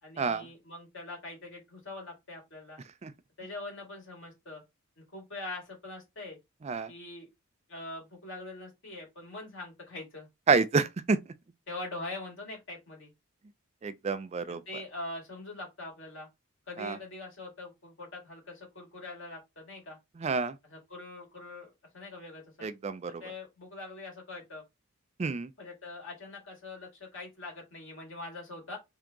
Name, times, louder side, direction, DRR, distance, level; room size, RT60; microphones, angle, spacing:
voice 1, 0.0-2.8 3.4-4.6 5.1-6.4 6.9-7.3 7.7-10.3 11.7-13.1 14.5-16.3 16.7-20.0 20.6-22.7 23.2-24.6 25.6-28.8, left 2 dB, 55° left, 2.2 m, -43 dB
voice 2, 10.5-11.2 13.8-14.6 16.8-17.0 20.2-20.5 22.6-23.1 25.2-25.5, right 4 dB, 30° right, 0.3 m, -28 dB
3.6 x 2.8 x 3.5 m
head